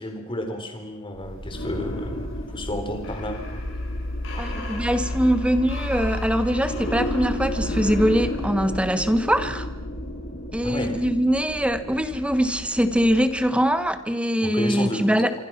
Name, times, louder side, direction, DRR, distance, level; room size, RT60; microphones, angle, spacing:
voice 1, 0.0-3.4 10.6-11.0 14.4-15.3, left 1 dB, 25° left, 5 dB, 4.1 m, -31 dB
sound 1, 1.1-13.9, left 1 dB, 60° left, 7.8 m, -31 dB
voice 2, 4.4-9.7 10.5-15.3, equal, 5° right, 10 dB, 1.2 m, -22 dB
26.0 x 26.0 x 5.9 m, 0.98 s
head